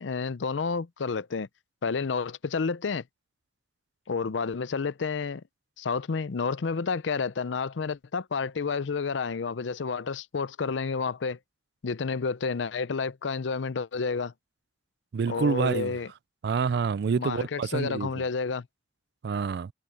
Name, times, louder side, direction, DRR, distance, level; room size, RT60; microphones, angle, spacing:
voice 1, 0.0-1.5 1.8-3.0 4.1-5.4 5.8-11.4 11.8-14.3 15.3-16.1 17.1-18.7, left 5 dB, 90° left, 0.6 m, -30 dB
voice 2, 15.1-15.9 16.4-18.2 19.2-19.7, right 5 dB, 60° right, 0.4 m, -27 dB
head